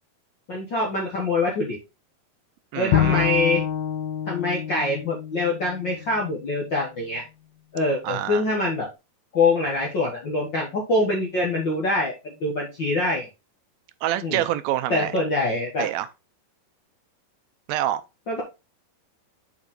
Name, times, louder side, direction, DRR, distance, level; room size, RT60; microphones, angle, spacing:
voice 1, 0.5-1.8 2.7-3.6 4.3-7.2 7.7-8.9 9.3-13.3 14.2-14.4 14.9-15.9 18.3-18.4, left 2 dB, 55° left, 1.3 m, -24 dB
voice 2, 2.7-3.3 8.0-8.4 14.0-15.1 15.8-16.1 17.7-18.0, right 13 dB, 80° right, 2.4 m, -26 dB
Bowed string instrument, 2.9-6.2, left 10 dB, 70° left, 1.8 m, -26 dB
7.1 x 4.6 x 3.8 m
omnidirectional pair, 4.3 m